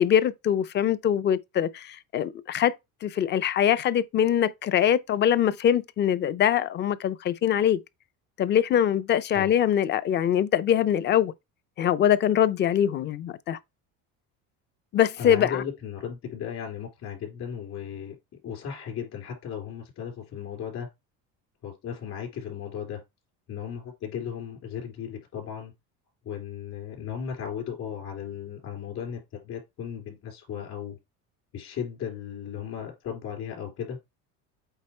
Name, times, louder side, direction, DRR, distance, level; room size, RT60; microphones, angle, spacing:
voice 1, 0.0-2.8 3.0-7.8 8.4-11.3 11.8-13.6 14.9-15.6, left 10 dB, 30° left, 0.5 m, -23 dB
voice 2, 15.2-18.1 18.4-20.9 21.6-23.0 23.5-25.7 26.2-31.0 31.5-34.0, left 8 dB, 50° left, 3.4 m, -36 dB
8.1 x 3.8 x 4.3 m
cardioid pair, 145°, 34 cm